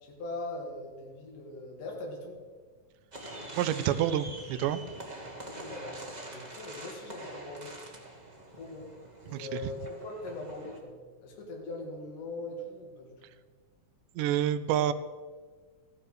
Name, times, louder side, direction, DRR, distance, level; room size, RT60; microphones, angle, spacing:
voice 1, 0.0-2.4 5.4-6.0 6.3-7.7 8.5-8.9 9.2-10.9 11.2-13.3, left 2 dB, 70° left, 0 dB, 3.7 m, -41 dB
sound 1, 3.1-10.8, right 1 dB, 45° right, 0.5 m, -45 dB
voice 2, 3.5-4.8 9.3-9.5 14.2-14.9, right 10 dB, 80° right, 13 dB, 2.1 m, -28 dB
14.5 x 11.5 x 4.9 m, 1.4 s
omnidirectional pair, 3.9 m